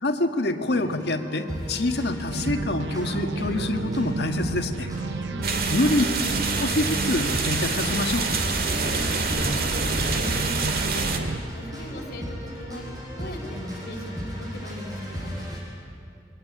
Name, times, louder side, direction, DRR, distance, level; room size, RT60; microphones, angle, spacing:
voice 1, 0.0-4.9 5.7-6.0 6.6-8.3, left 2 dB, 75° left, 6 dB, 1.7 m, -26 dB
sound 1, 0.7-15.6, equal, 20° right, 5.9 m, -35 dB
sound 2, 2.3-11.4, right 4 dB, 85° right, 0.6 m, -33 dB
voice 2, 5.2-5.7 8.8-12.8 13.2-15.3, equal, 50° left, -2 dB, 4.2 m, -39 dB
sound 3, 5.4-11.2, right 4 dB, 55° right, 2.1 m, -26 dB
26.0 x 22.0 x 8.8 m, 2.6 s
head